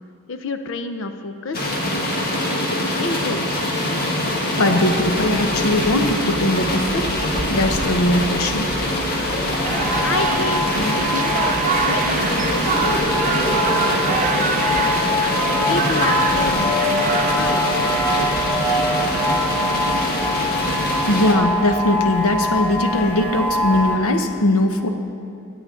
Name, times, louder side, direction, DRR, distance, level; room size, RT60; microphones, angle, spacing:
voice 1, 0.3-1.7 2.8-3.6 10.0-11.3 11.6-14.9 15.7-17.7, left 3 dB, 60° left, 8 dB, 0.6 m, -29 dB
sound 1, 1.5-21.3, left 1 dB, 45° left, 1.5 m, -24 dB
voice 2, 4.5-7.1 7.5-8.7 21.1-24.9, left 1 dB, 75° left, 6 dB, 1.0 m, -20 dB
sound 2, 4.9-24.0, left 1 dB, 10° left, 1.4 m, -25 dB
sound 3, 9.6-17.4, right 6 dB, 35° right, 0.4 m, -26 dB
19.0 x 8.6 x 3.8 m, 2.5 s
head